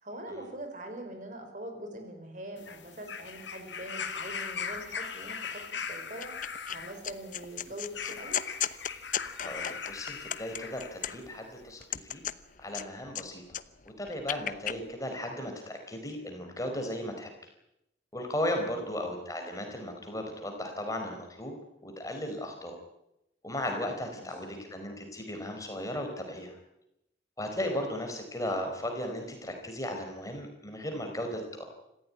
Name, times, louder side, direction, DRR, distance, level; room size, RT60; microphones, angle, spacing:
voice 1, 0.0-6.3 6.7-8.4 18.6-18.9 24.1-24.3, right 1 dB, 45° right, 5 dB, 5.2 m, -43 dB
sound 1, 2.6-11.2 12.1-12.2, left 6 dB, 85° left, 2.5 m, -40 dB
sound 2, 6.2-6.8 7.0-11.4 11.8-13.2 13.5-14.8, left 10 dB, 45° left, 0.8 m, -35 dB
voice 2, 9.4-12.2 12.6-13.4 14.0-17.3 18.1-21.6 21.8-22.7 23.4-26.6 27.4-31.6, left 1 dB, 20° left, 4 dB, 4.6 m, -36 dB
26.5 x 15.5 x 9.8 m, 0.86 s
head